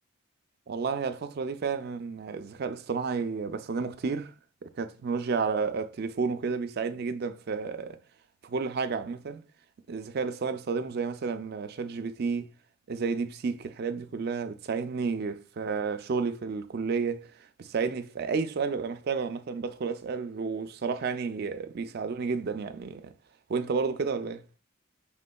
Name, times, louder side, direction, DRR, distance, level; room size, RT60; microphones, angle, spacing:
voice 1, 0.7-4.3 4.6-8.0 8.4-9.4 9.9-12.5 12.9-17.3 17.6-23.1 23.5-24.4, right 5 dB, 50° right, 0.4 m, -31 dB
5.1 x 3.6 x 2.2 m
head